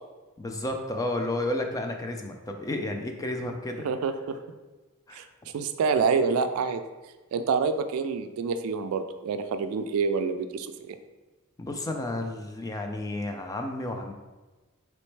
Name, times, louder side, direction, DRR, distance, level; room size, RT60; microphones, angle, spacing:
voice 1, 0.4-3.9 5.1-5.3 11.6-14.1, left 1 dB, 15° left, 4 dB, 0.3 m, -32 dB
voice 2, 3.8-4.4 5.1-5.2 5.5-6.8 7.3-11.0, right 5 dB, 70° right, 8 dB, 0.3 m, -27 dB
4.2 x 3.0 x 3.2 m, 1.2 s
head